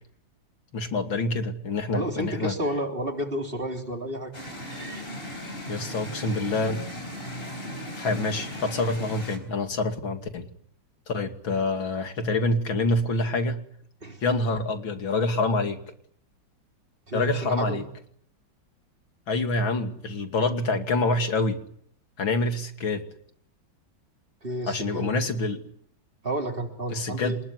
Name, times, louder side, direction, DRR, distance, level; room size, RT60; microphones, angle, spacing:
voice 1, 0.7-2.5 5.7-6.8 8.0-10.5 11.1-13.6 14.2-15.8 17.1-17.8 19.3-21.6 22.2-23.0 24.7-25.6 26.9-27.4, left 2 dB, 80° left, 7 dB, 3.3 m, -26 dB
voice 2, 1.9-4.3 14.0-14.2 17.1-17.8 24.4-25.1 26.2-27.4, right 1 dB, 25° right, 4 dB, 3.8 m, -31 dB
sound 1, 4.3-9.4, equal, 30° left, 4.8 m, -37 dB
26.5 x 21.0 x 9.6 m, 0.66 s
omnidirectional pair, 2.1 m